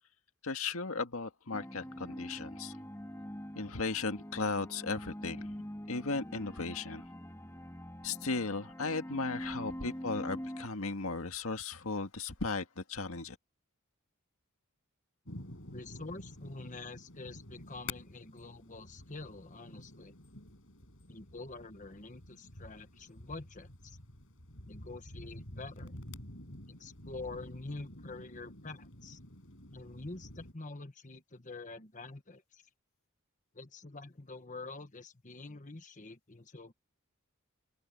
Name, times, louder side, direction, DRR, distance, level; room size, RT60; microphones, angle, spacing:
voice 1, 0.4-2.8 3.6-5.5 5.9-7.0 8.0-13.4, left 3 dB, 80° left, 1.8 m, -36 dB
sound 1, 1.5-10.7, equal, 15° left, 2.6 m, -44 dB
sound 2, 15.3-30.5, left 2 dB, 65° left, 5.4 m, -49 dB
voice 2, 15.7-20.1 21.1-24.0 24.6-25.9 26.7-29.2 29.7-32.6 33.5-36.7, left 3 dB, 35° left, 1.4 m, -46 dB
open air
head